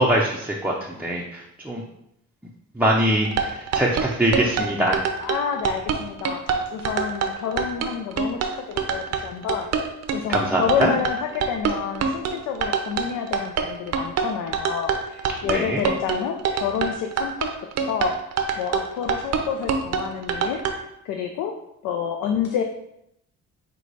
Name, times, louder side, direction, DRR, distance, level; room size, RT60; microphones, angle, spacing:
voice 1, 0.0-1.8 2.8-5.0 10.3-10.9 15.5-15.8, right 1 dB, 5° right, -4 dB, 0.5 m, -23 dB
sound 1, 3.2-20.7, right 7 dB, 60° right, 0.6 m, -25 dB
voice 2, 5.2-17.5 17.8-18.3 18.6-21.5 21.8-22.6, left 7 dB, 85° left, 4 dB, 0.5 m, -29 dB
4.7 x 2.2 x 3.9 m, 0.79 s
cardioid pair, 90°, 30 cm